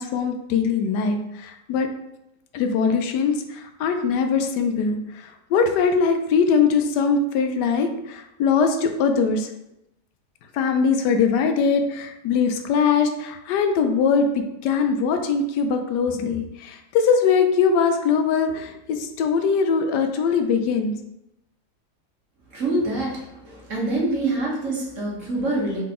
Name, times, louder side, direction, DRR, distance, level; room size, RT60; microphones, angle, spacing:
voice 1, 0.0-1.9 2.5-9.5 10.5-14.3 14.6-20.9, left 5 dB, 80° left, 6 dB, 1.2 m, -21 dB
voice 2, 22.5-25.8, right 2 dB, 50° right, -3 dB, 1.3 m, -25 dB
3.8 x 3.7 x 3.7 m, 0.86 s
omnidirectional pair, 1.8 m